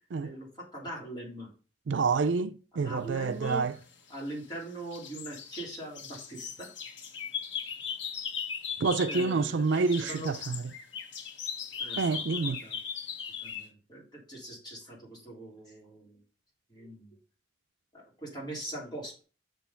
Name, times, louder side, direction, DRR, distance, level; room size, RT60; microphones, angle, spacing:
voice 1, 0.0-1.5 2.7-3.8 4.1-6.7 9.1-10.3 11.8-12.8 13.4-16.2 16.7-17.2 17.9-19.2, right 1 dB, 20° left, 3.5 m, -42 dB
voice 2, 1.9-3.7 8.8-10.6 12.0-12.6, right 4 dB, 75° right, 0.4 m, -28 dB
sound 1, 3.8-4.6 4.9-9.4 9.7-13.7, left 7 dB, 75° left, 1.0 m, -38 dB
6.4 x 4.7 x 5.6 m
head